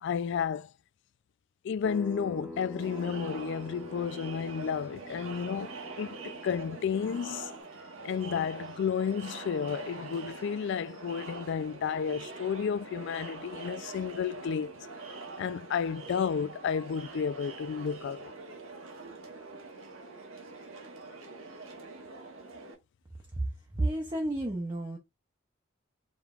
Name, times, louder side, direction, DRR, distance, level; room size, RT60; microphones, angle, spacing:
voice 1, 0.0-0.7 1.6-7.5 8.0-14.7 15.4-18.3, left 7 dB, 60° left, 0.3 m, -32 dB
sound 1, 1.8-7.6, equal, ahead, 1.0 m, -46 dB
Crowd, 2.8-22.7, right 3 dB, 80° right, 1.3 m, -44 dB
voice 2, 23.4-25.0, right 1 dB, 20° right, 0.7 m, -31 dB
5.1 x 3.2 x 2.4 m
head